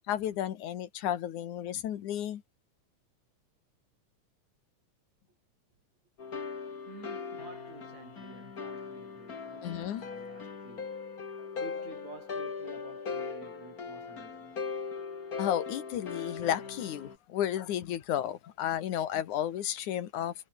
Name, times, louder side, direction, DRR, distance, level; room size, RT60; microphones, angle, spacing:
voice 1, 0.1-2.4 9.6-10.0 15.4-20.3, left 11 dB, 80° left, 2.9 m, -32 dB
sound 1, 6.2-17.2, left 5 dB, 30° left, 2.2 m, -39 dB
voice 2, 6.9-10.9 11.5-14.6, right 4 dB, 65° right, 6.3 m, -51 dB
omnidirectional pair, 3.4 m